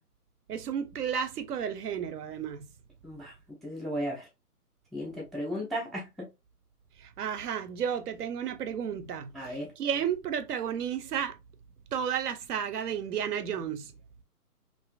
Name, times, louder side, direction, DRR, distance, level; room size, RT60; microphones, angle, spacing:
voice 1, 0.5-2.7 7.0-11.4 11.9-13.9, right 8 dB, 80° right, 0.6 m, -32 dB
voice 2, 3.6-4.3 4.9-6.1 9.3-9.7, equal, ahead, 0.3 m, -35 dB
2.5 x 2.4 x 2.2 m
hypercardioid pair, 170°, 46 cm